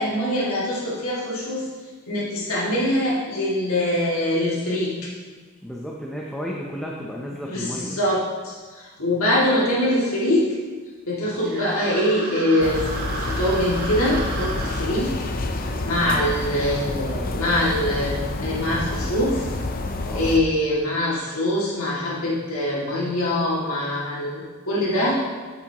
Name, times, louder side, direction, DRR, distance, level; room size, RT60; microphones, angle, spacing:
voice 1, 0.0-1.7 2.1-5.1 7.4-10.5 11.1-12.8 13.1-15.1 15.8-19.5 20.1-25.2, left 1 dB, 90° left, -6 dB, 2.3 m, -23 dB
voice 2, 5.6-8.0 16.1-16.3 20.1-20.4 23.0-23.1, equal, ahead, -3 dB, 0.6 m, -33 dB
sound 1, 11.3-14.8, right 3 dB, 45° right, 1.2 m, -33 dB
sound 2, 12.6-20.4, left 2 dB, 45° left, 0.6 m, -28 dB
8.5 x 8.4 x 2.9 m, 1.4 s
head